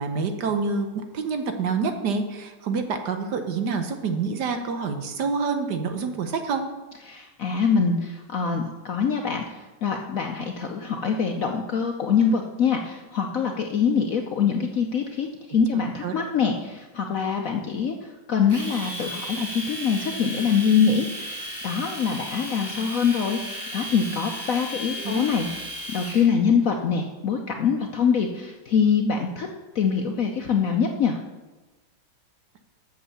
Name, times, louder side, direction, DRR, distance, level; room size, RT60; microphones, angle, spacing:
voice 1, 0.0-6.7 16.0-16.1 25.0-25.2, right 4 dB, 65° right, 7 dB, 1.3 m, -27 dB
voice 2, 7.1-21.4 21.6-25.5 25.9-29.5 29.7-31.2, left 6 dB, 65° left, 3 dB, 0.8 m, -24 dB
Domestic sounds home sounds, 18.5-26.3, equal, 40° right, 2.7 m, -35 dB
8.4 x 6.5 x 7.0 m, 1.2 s
omnidirectional pair, 2.1 m